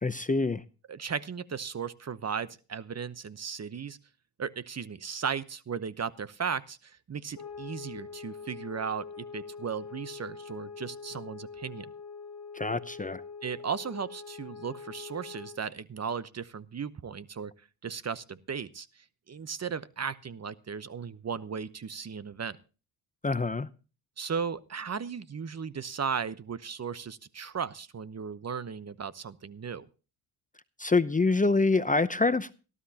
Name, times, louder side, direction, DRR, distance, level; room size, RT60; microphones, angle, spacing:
voice 1, 0.0-0.6 12.5-13.2 23.2-23.7 30.8-32.5, left 3 dB, 15° left, 0.7 m, -26 dB
voice 2, 0.9-4.0 4.4-11.9 13.4-17.5 17.8-22.6 24.2-29.9, right 6 dB, 35° right, 1.0 m, -36 dB
sound 1, 7.3-15.7, left 5 dB, 50° left, 1.8 m, -44 dB
18.5 x 12.5 x 2.9 m
supercardioid pair, 55°, 47 cm